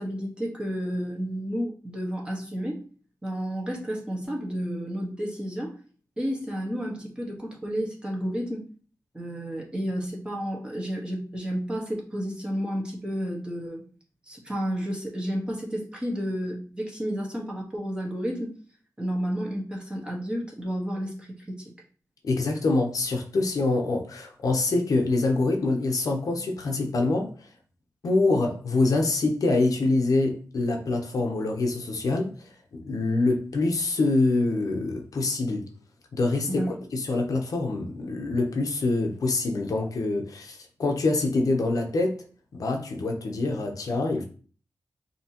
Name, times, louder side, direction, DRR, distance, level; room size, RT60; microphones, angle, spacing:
voice 1, 0.0-2.8 3.2-5.7 6.2-8.6 9.1-13.8 14.3-18.5 19.0-21.7 36.5-36.7, equal, 15° right, 1.4 m, -31 dB
voice 2, 22.2-27.3 28.0-32.3 32.7-35.7 36.1-42.2 42.5-44.2, left 2 dB, 70° left, 0.8 m, -25 dB
5.7 x 3.0 x 2.9 m
wide cardioid pair, 110°, 6 cm